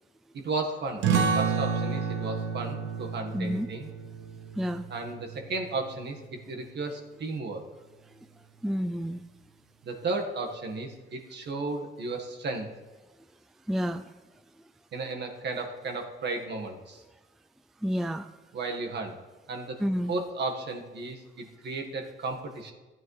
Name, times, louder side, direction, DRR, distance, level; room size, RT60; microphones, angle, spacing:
voice 1, 0.3-3.9 4.9-7.6 9.8-12.7 14.9-17.0 18.5-19.2 19.5-19.8 20.1-22.7, right 3 dB, 60° right, 3 dB, 1.6 m, -34 dB
sound 1, 1.0-6.2, right 6 dB, 75° right, 1.0 m, -30 dB
voice 2, 3.3-3.7 4.5-4.9 8.6-9.2 13.7-14.1 17.8-18.3 19.8-20.1, equal, ahead, 9 dB, 0.3 m, -29 dB
14.5 x 9.6 x 3.3 m, 1.2 s
cardioid pair, 90°, 20 cm